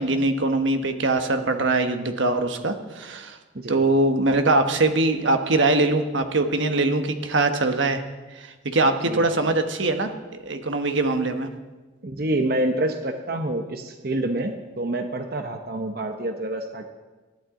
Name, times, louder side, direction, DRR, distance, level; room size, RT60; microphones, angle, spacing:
voice 1, 0.0-3.4 3.7-8.0 8.4-11.5, right 2 dB, 75° right, 6 dB, 1.3 m, -22 dB
voice 2, 9.1-9.5 12.0-16.8, right 1 dB, 50° right, 5 dB, 0.9 m, -27 dB
20.5 x 12.5 x 3.8 m, 1.2 s
head